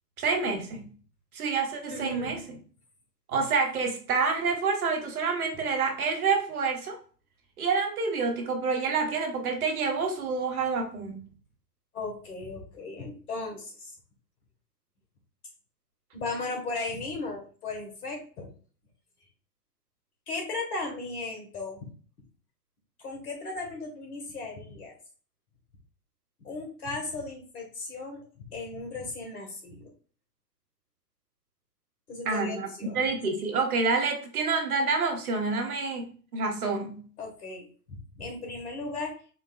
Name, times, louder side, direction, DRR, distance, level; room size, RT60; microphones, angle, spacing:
voice 1, 0.2-0.9 1.3-2.4 3.3-7.0 7.6-11.2 32.3-37.0, right 4 dB, 60° right, 4 dB, 1.2 m, -28 dB
voice 2, 1.9-2.4 11.9-14.0 16.1-18.5 20.3-21.9 23.0-24.9 26.4-28.2 28.5-29.9 32.1-33.0 37.2-39.2, left 3 dB, 65° left, 2 dB, 1.7 m, -36 dB
4.5 x 3.3 x 2.4 m, 0.41 s
figure-of-eight pair, 120°, 48 cm